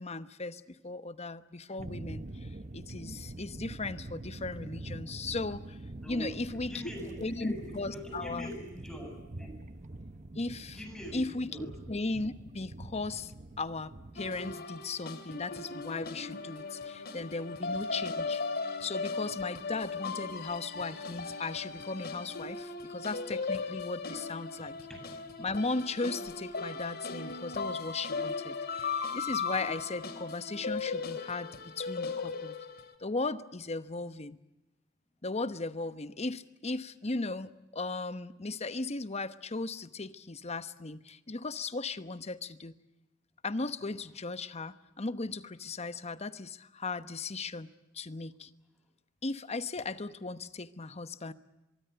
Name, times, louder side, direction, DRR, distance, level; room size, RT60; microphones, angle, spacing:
voice 1, 0.0-5.8 6.1-6.7 7.2-8.5 10.3-10.8 11.1-18.4 18.8-24.7 25.4-32.5 33.0-34.4 35.2-42.8 43.4-47.7 47.9-48.5 49.2-51.3, left 3 dB, 35° left, 13 dB, 1.0 m, -37 dB
Underwater Ambiance, 1.8-14.5, right 2 dB, 35° right, 0.9 m, -45 dB
voice 2, 6.0-9.1 9.4-9.5 10.7-11.7 24.9-25.4, equal, 5° left, 2 dB, 8.0 m, -43 dB
sound 1, 14.2-32.9, left 4 dB, 50° left, 2.7 m, -37 dB
24.0 x 23.5 x 8.0 m, 0.96 s
head